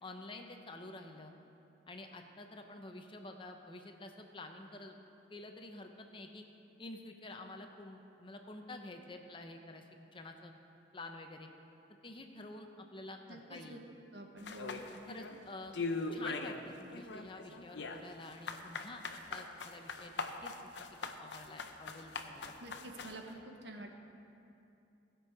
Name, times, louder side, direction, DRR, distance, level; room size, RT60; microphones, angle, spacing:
voice 1, 0.0-1.3 1.9-5.0 5.3-6.5 6.8-9.9 10.1-10.5 10.9-11.5 12.0-13.8 15.1-15.7 16.1-19.0 19.3-22.6 23.7-24.0, left 2 dB, 30° left, 4 dB, 0.7 m, -49 dB
voice 2, 13.3-13.8 14.1-14.8 22.6-24.0, right 1 dB, 65° right, 2 dB, 1.2 m, -48 dB
sound 1, 14.4-15.4 15.7-16.6 16.9-23.2, left 3 dB, 70° left, 0.7 m, -40 dB
18.5 x 6.2 x 4.8 m, 2.7 s
head